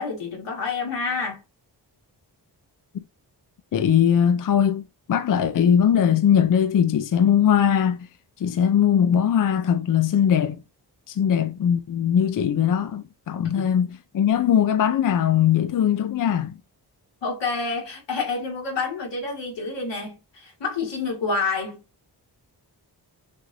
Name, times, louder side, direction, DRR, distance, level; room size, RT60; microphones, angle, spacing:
voice 1, 0.0-1.4 17.2-21.8, left 4 dB, 90° left, 2.0 m, -28 dB
voice 2, 3.7-8.1 8.4-10.6 11.1-16.6, left 9 dB, 50° left, 0.4 m, -20 dB
6.3 x 2.5 x 2.7 m
wide cardioid pair, 130°, 42 cm